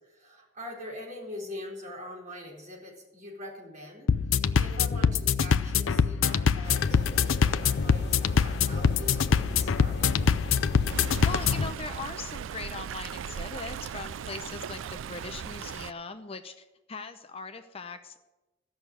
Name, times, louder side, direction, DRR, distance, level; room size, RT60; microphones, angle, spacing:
voice 1, 0.0-10.1, left 1 dB, 40° right, -3 dB, 4.2 m, -43 dB
sound 1, 4.1-11.7, left 6 dB, 75° left, 0.5 m, -24 dB
sound 2, 6.6-11.7, left 1 dB, 55° left, 1.4 m, -38 dB
Stream, 10.9-15.9, right 7 dB, 75° right, 0.4 m, -38 dB
voice 2, 11.2-18.2, left 4 dB, 30° left, 8 dB, 0.6 m, -40 dB
14.5 x 6.4 x 9.8 m, 1.1 s
head